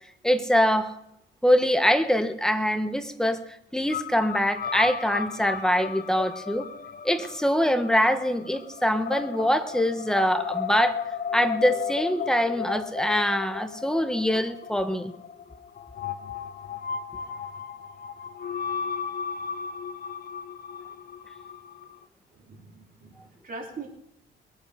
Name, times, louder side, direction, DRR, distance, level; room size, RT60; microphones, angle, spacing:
voice 1, 0.2-0.9 1.4-3.4 3.7-6.7 7.0-11.0 11.3-15.1, equal, 5° left, 8 dB, 1.5 m, -24 dB
sound 1, 3.9-22.0, left 7 dB, 50° left, 0.8 m, -35 dB
voice 2, 22.3-23.9, right 3 dB, 45° right, 0 dB, 4.2 m, -41 dB
22.0 x 8.7 x 5.2 m, 0.78 s
cardioid pair, 90°, 20 cm